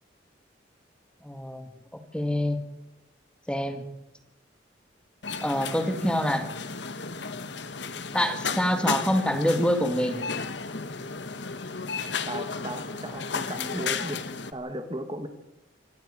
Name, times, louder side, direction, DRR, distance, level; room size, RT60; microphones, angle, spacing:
voice 1, 1.2-1.7 2.1-2.6 3.5-3.8 5.4-6.5 8.1-10.2, equal, 5° left, 6 dB, 2.1 m, -25 dB
sound 1, 5.2-14.5, left 5 dB, 70° left, 1.3 m, -34 dB
voice 2, 12.3-14.2 14.5-15.3, right 1 dB, 25° right, 7 dB, 1.5 m, -35 dB
25.0 x 11.5 x 8.9 m, 0.88 s
head